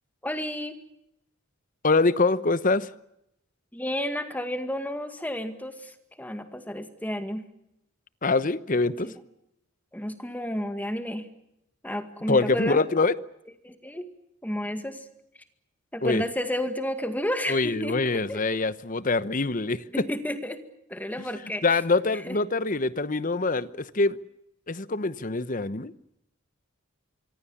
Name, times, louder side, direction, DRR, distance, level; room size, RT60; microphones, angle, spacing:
voice 1, 0.2-0.8 3.7-7.5 9.0-9.1 9.9-11.3 11.8-12.8 13.6-14.1 14.4-15.0 15.9-18.0 18.3-18.4 19.9-20.6 20.9-21.6 22.3-22.4, equal, 10° left, 2.0 m, -31 dB
voice 2, 1.8-2.9 8.2-9.1 12.3-13.1 16.0-16.2 17.5-20.1 21.3-24.2 24.7-25.9, left 3 dB, 40° left, 0.9 m, -24 dB
26.0 x 24.5 x 7.2 m
head